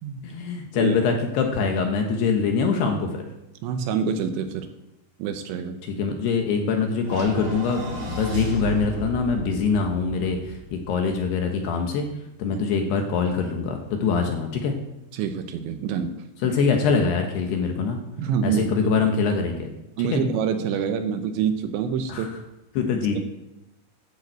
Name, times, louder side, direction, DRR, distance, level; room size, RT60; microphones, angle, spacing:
voice 1, 0.2-3.3 5.9-12.1 12.4-14.7 16.4-18.0 18.4-19.7 22.1-22.3 22.7-23.2, left 5 dB, 70° left, 4 dB, 2.7 m, -24 dB
voice 2, 3.6-4.7 5.2-5.8 12.5-12.6 15.1-16.2 18.2-18.7 20.0-22.3, right 7 dB, 80° right, 7 dB, 3.0 m, -26 dB
sound 1, 7.0-11.5, right 1 dB, 30° right, 2.0 m, -34 dB
12.0 x 7.1 x 7.9 m, 0.93 s
omnidirectional pair, 5.6 m